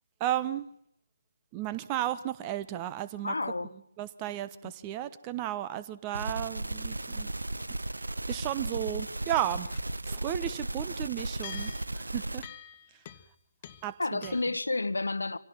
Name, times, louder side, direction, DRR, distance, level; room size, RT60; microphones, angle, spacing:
voice 1, 0.2-0.7 1.5-3.3 4.0-7.3 8.3-9.7 10.0-12.4 13.8-14.3, right 12 dB, 20° right, 1.1 m, -34 dB
voice 2, 3.2-3.7 4.6-4.7 14.0-15.4, left 2 dB, 65° left, 1.3 m, -30 dB
sound 1, 6.1-12.5, right 2 dB, 70° right, 1.1 m, -35 dB
sound 2, 8.9-9.8 10.1-10.2 11.2-12.0 12.4-13.4 13.6-13.9 14.2-14.6, left 10 dB, 25° left, 1.2 m, -48 dB
25.5 x 17.5 x 7.5 m
figure-of-eight pair, 145°, 0 cm